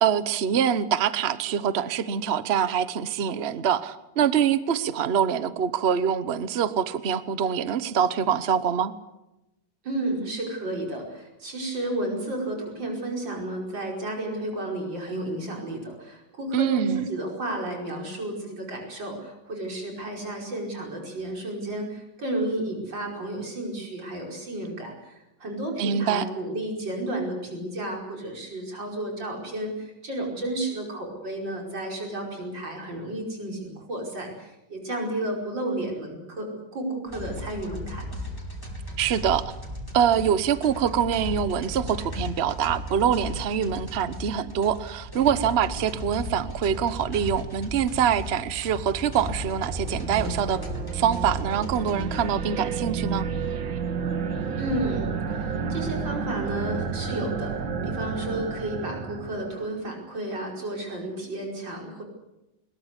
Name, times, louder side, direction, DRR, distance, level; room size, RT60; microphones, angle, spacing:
voice 1, 0.0-8.9 16.5-17.1 25.8-26.2 39.0-39.5 39.9-50.6 50.9-53.3, right 8 dB, 40° right, 14 dB, 1.0 m, -24 dB
voice 2, 9.8-38.1 54.6-55.1 55.4-57.6 57.8-62.0, right 1 dB, 70° right, 1 dB, 5.8 m, -32 dB
sound 1, 37.1-52.2, left 1 dB, 10° left, 4.2 m, -36 dB
sound 2, 49.3-59.8, right 5 dB, 90° right, 2.3 m, -31 dB
21.5 x 21.0 x 8.2 m, 0.95 s
omnidirectional pair, 2.1 m